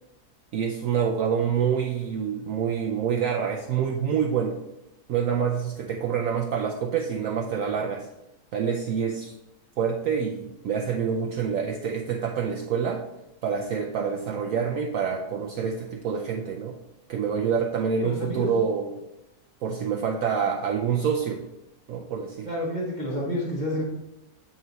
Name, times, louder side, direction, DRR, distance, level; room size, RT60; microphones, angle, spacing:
voice 1, 0.5-4.6 5.1-8.1 8.5-9.3 9.8-13.0 13.4-16.8 17.1-19.0 19.6-21.4 21.9-22.5, right 7 dB, 70° right, 1 dB, 0.9 m, -27 dB
voice 2, 18.0-18.5 22.4-23.8, equal, 35° right, -5 dB, 1.0 m, -29 dB
8.3 x 3.0 x 3.9 m, 0.90 s
omnidirectional pair, 1.7 m